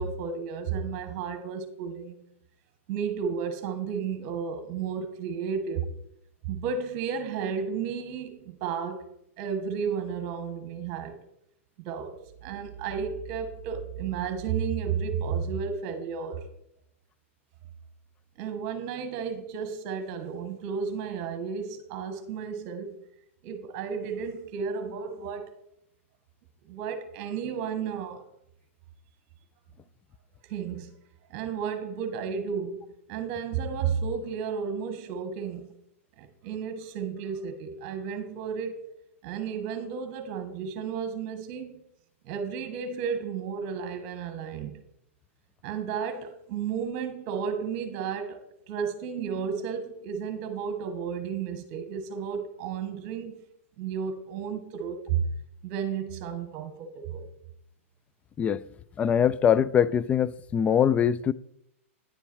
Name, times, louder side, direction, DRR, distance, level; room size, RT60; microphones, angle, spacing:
voice 1, 0.0-2.2 2.9-5.9 6.4-9.0 9.4-11.2 11.8-12.2 12.4-16.5 18.4-22.9 23.4-25.5 26.6-28.2 30.5-30.9 31.3-32.8 33.1-35.7 36.2-38.8 39.2-41.8 42.2-44.8 45.6-53.3 53.8-55.3 55.6-57.2, right 6 dB, 40° right, 1.6 m, -33 dB
voice 2, 59.0-61.3, left 8 dB, 20° left, 0.4 m, -23 dB
10.0 x 7.0 x 4.6 m
hypercardioid pair, 125°, 8 cm